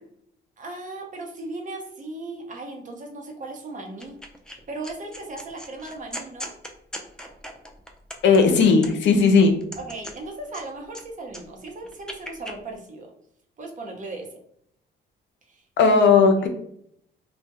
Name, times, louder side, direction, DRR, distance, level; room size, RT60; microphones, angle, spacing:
voice 1, 0.6-4.2 4.5-6.5 9.8-13.1 13.6-14.3 15.5-16.0, right 2 dB, 40° right, 1 dB, 0.6 m, -37 dB
sound 1, 4.0-4.6 4.8-9.2 9.6-11.0 11.3-12.6, equal, 5° left, 0.4 m, -39 dB
voice 2, 8.2-9.6 15.8-16.5, left 4 dB, 70° left, 5 dB, 0.5 m, -16 dB
2.1 x 2.1 x 2.8 m, 0.69 s
cardioid pair, 90°, 20 cm